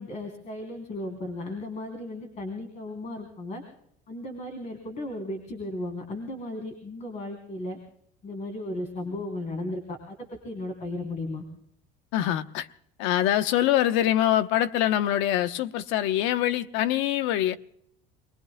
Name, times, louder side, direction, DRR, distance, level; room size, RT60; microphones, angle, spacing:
voice 1, 0.0-3.6 4.1-7.8 8.2-10.2 10.4-11.4, left 2 dB, 35° left, 3.4 m, -35 dB
voice 2, 12.1-12.7 13.0-17.6, left 12 dB, 80° left, 1.0 m, -24 dB
28.5 x 20.5 x 2.2 m
cardioid pair, 155°, 19 cm